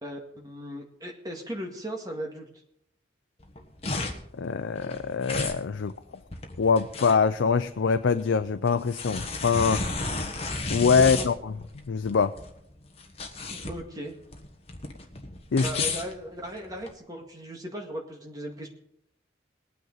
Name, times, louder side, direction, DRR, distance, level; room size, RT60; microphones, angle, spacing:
voice 1, 0.0-2.5 10.8-11.3 13.5-14.1 15.6-18.7, right 1 dB, 20° right, 1 dB, 2.0 m, -37 dB
sound 1, 3.4-16.9, left 3 dB, 35° left, 1.3 m, -34 dB
voice 2, 4.4-5.9 6.6-9.8 10.7-11.5 11.9-12.3 15.5-15.7, left 5 dB, 90° left, 9 dB, 0.5 m, -24 dB
20.0 x 9.3 x 4.1 m, 0.74 s
head